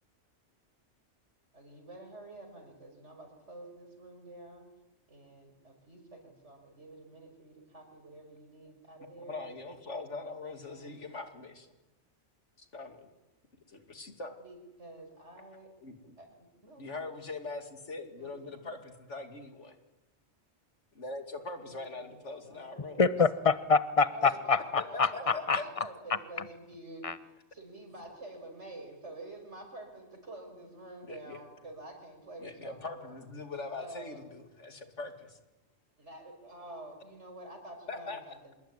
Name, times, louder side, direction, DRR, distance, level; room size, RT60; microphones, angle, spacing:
voice 1, 1.5-4.7 5.1-9.5 10.7-11.1 14.4-15.7 16.2-17.1 18.1-18.7 21.6-23.0 24.1-27.1 27.5-33.2 33.8-34.3 36.0-38.5, right 1 dB, 75° right, 4 dB, 5.9 m, -48 dB
voice 2, 9.0-11.7 12.6-13.0 13.7-14.3 15.8-16.1 16.8-19.8 20.9-23.0 24.2-24.3 24.8-25.6 31.1-31.4 32.4-35.4 37.9-38.4, left 3 dB, 85° left, 7 dB, 2.9 m, -42 dB
voice 3, 23.0-25.6 27.0-27.1, left 4 dB, 30° left, 14 dB, 1.1 m, -26 dB
26.5 x 20.5 x 9.7 m, 1.0 s
omnidirectional pair, 1.2 m